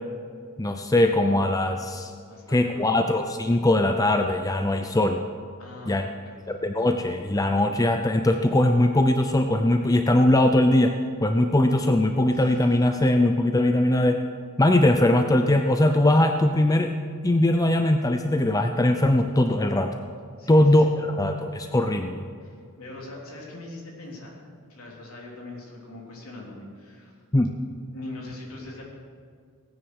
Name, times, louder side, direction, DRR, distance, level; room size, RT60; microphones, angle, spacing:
voice 1, 0.6-2.1 2.5-5.2 5.9-6.0 6.5-10.9 11.2-14.2 14.6-16.9 17.2-19.9 20.5-22.2 27.3-27.5, left 1 dB, 15° left, 6 dB, 0.5 m, -21 dB
voice 2, 2.3-2.9 5.6-6.4 12.3-12.6 20.4-21.0 22.4-24.4 24.7-27.1 27.9-28.8, left 2 dB, 65° left, -2 dB, 3.5 m, -42 dB
18.0 x 9.7 x 6.3 m, 2.2 s
head